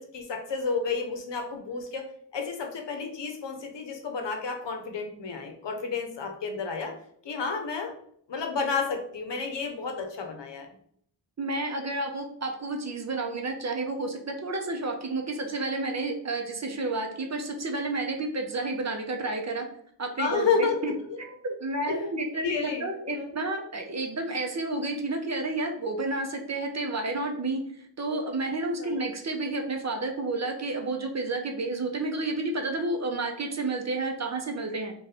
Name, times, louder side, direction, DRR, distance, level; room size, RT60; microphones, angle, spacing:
voice 1, 0.0-2.1 2.3-7.0 7.2-8.0 8.3-10.7 20.2-21.2 21.9-22.0 22.3-23.3 28.8-29.1, left 5 dB, 65° left, 4 dB, 0.8 m, -31 dB
voice 2, 11.4-19.6 20.0-20.9 21.4-27.6 28.0-34.9, right 2 dB, 35° right, 3 dB, 0.6 m, -30 dB
2.5 x 2.4 x 4.0 m, 0.64 s
cardioid pair, 50°, 45 cm